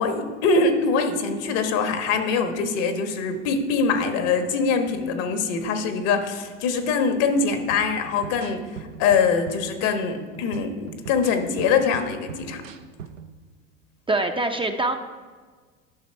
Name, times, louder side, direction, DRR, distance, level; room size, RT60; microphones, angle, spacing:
voice 1, 0.0-8.7 9.0-12.6, left 5 dB, 65° left, 6 dB, 1.4 m, -23 dB
sound 1, 7.7-13.3, right 7 dB, 85° right, 0.7 m, -41 dB
voice 2, 14.1-15.0, right 2 dB, 15° right, 5 dB, 0.6 m, -24 dB
11.5 x 5.9 x 4.5 m, 1.5 s
hypercardioid pair, 75°, 38 cm